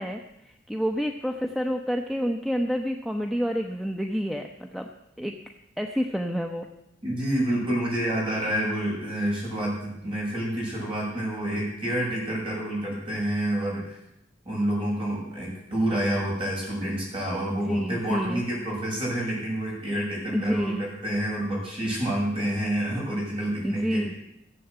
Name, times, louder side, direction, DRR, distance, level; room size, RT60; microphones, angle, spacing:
voice 1, 0.0-4.9 5.2-5.4 5.8-6.7 17.5-18.4 20.3-20.9 23.6-24.1, equal, ahead, 4 dB, 0.7 m, -29 dB
voice 2, 7.0-14.0 14.4-24.0, right 1 dB, 30° right, -3 dB, 6.6 m, -28 dB
16.0 x 7.8 x 8.0 m, 0.82 s
head